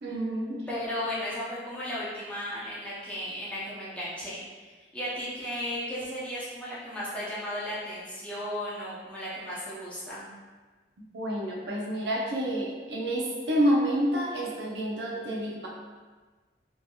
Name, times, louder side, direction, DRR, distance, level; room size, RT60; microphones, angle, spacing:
voice 1, 0.0-0.7 11.1-15.7, equal, 65° right, -3 dB, 0.6 m, -28 dB
voice 2, 0.7-4.4 4.9-10.3, equal, 5° left, -9 dB, 0.7 m, -35 dB
2.9 x 2.7 x 2.3 m, 1.3 s
head